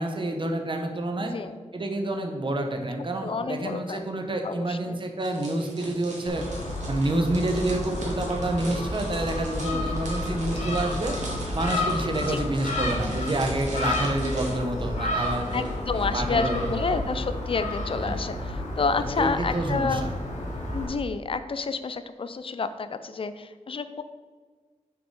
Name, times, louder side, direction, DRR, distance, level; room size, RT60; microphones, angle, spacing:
voice 1, 0.0-1.4 1.7-6.5 6.9-11.1 11.5-15.7 15.9-17.0 18.0-18.2 19.2-20.1, right 1 dB, 40° right, 4 dB, 1.1 m, -28 dB
voice 2, 1.2-1.6 3.2-4.1 4.4-5.0 9.7-10.0 12.3-12.4 15.5-20.1 20.7-24.0, left 4 dB, 45° left, 11 dB, 0.5 m, -29 dB
sound 1, 5.2-16.0 16.3-16.6, right 1 dB, 80° right, 1.9 m, -41 dB
Gull seagull, 6.3-20.9, left 1 dB, 80° left, 1.6 m, -31 dB
6.4 x 5.1 x 4.9 m, 1.5 s
wide cardioid pair, 75°, 12 cm